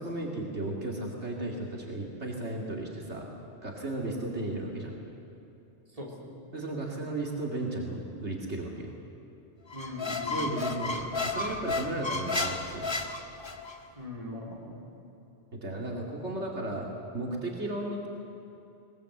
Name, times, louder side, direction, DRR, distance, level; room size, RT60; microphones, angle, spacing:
voice 1, 0.0-3.3 3.6-4.9 6.5-8.9 10.3-12.9 15.5-16.9 17.1-18.1, right 2 dB, 70° right, -1 dB, 2.7 m, -35 dB
voice 2, 5.9-6.3 9.7-10.6 14.0-15.0, left 1 dB, 30° right, -2 dB, 3.7 m, -41 dB
Squeak, 9.7-13.8, left 3 dB, 25° left, 1.4 m, -32 dB
21.0 x 20.5 x 8.0 m, 2.9 s
omnidirectional pair, 1.2 m